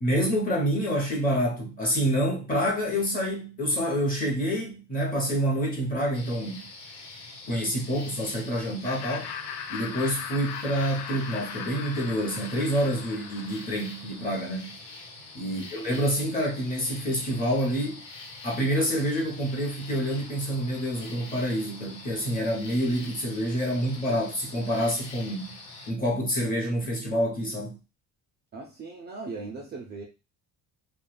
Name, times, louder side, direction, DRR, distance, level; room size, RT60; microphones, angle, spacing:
voice 1, 0.0-6.7 7.5-9.3 9.7-14.7 15.3-18.0 18.4-25.6 25.9-27.7, equal, 20° left, 0.8 m, -27 dB
sound 1, 6.1-25.9, left 3 dB, 65° left, 1.0 m, -45 dB
Laughter, 8.8-14.1, left 8 dB, 85° left, 0.6 m, -39 dB
voice 2, 28.5-30.0, right 3 dB, 25° right, 0.3 m, -39 dB
2.4 x 2.3 x 3.1 m
cardioid pair, 140°, 42 cm